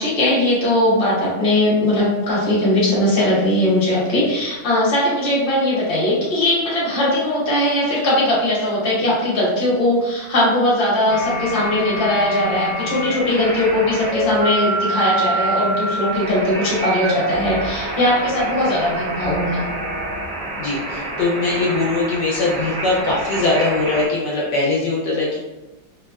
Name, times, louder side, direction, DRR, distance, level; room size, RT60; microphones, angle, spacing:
voice 1, 0.0-19.6, left 1 dB, 35° left, -7 dB, 0.9 m, -19 dB
sound 1, 11.1-24.1, right 2 dB, 55° right, 0.6 m, -26 dB
voice 2, 20.6-25.4, left 3 dB, 75° left, -4 dB, 1.1 m, -21 dB
3.4 x 2.1 x 2.2 m, 1.1 s
omnidirectional pair, 2.0 m